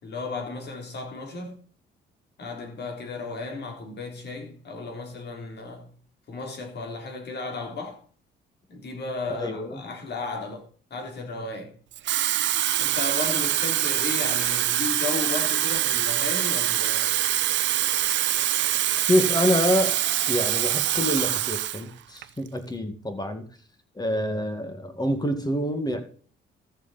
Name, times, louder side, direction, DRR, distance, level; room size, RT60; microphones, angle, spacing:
voice 1, 0.0-1.6 2.4-5.9 6.3-8.0 8.7-11.8 12.8-17.1, left 3 dB, 60° left, 3.4 m, -34 dB
voice 2, 9.4-9.8 19.1-20.0 20.3-23.5 24.0-26.0, left 1 dB, 20° left, 2.2 m, -26 dB
Water tap faucet / Fill (with liquid), 11.9-21.8 22.2-22.5, right 12 dB, 65° right, 0.6 m, -24 dB
14.0 x 7.1 x 4.3 m
cardioid pair, 90°, 20 cm